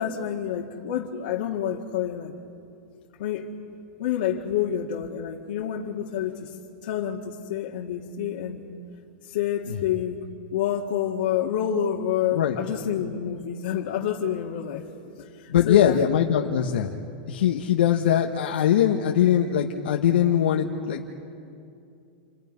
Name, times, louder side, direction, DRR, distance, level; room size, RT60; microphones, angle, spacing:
voice 1, 0.0-2.4 3.2-3.5 4.0-6.6 6.8-8.6 9.2-10.3 10.5-14.9 15.2-16.0, left 9 dB, 60° left, -3 dB, 2.0 m, -28 dB
voice 2, 15.5-16.9 17.3-21.1, left 10 dB, 90° left, 1 dB, 1.6 m, -21 dB
30.0 x 28.0 x 5.5 m, 2.5 s
supercardioid pair, 175°, 6 cm